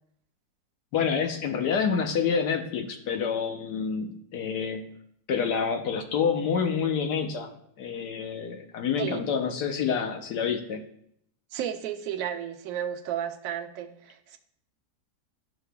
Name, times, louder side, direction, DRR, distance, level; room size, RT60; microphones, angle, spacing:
voice 1, 0.9-4.9 5.3-10.8, left 6 dB, 80° left, 5 dB, 1.4 m, -28 dB
voice 2, 11.5-14.4, right 9 dB, 65° right, 5 dB, 1.0 m, -33 dB
13.0 x 4.7 x 2.3 m, 0.70 s
omnidirectional pair, 1.8 m